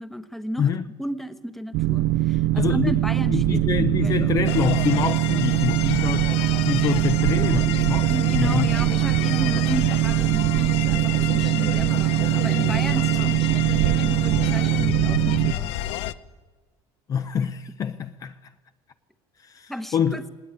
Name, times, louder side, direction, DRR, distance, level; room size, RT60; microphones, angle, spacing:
voice 1, 0.0-0.7 1.0-4.3 8.1-15.7 19.7-20.2, equal, ahead, 1.0 m, -33 dB
Boat Water vehicle, 1.7-15.5, right 16 dB, 70° right, 0.6 m, -22 dB
voice 2, 2.5-3.0 3.3-6.3 6.6-8.8 17.1-18.5 19.4-20.2, left 7 dB, 35° left, 0.6 m, -26 dB
sound 1, 4.5-16.1, left 13 dB, 65° left, 0.7 m, -31 dB
19.0 x 18.5 x 9.1 m
cardioid pair, 140°, 11 cm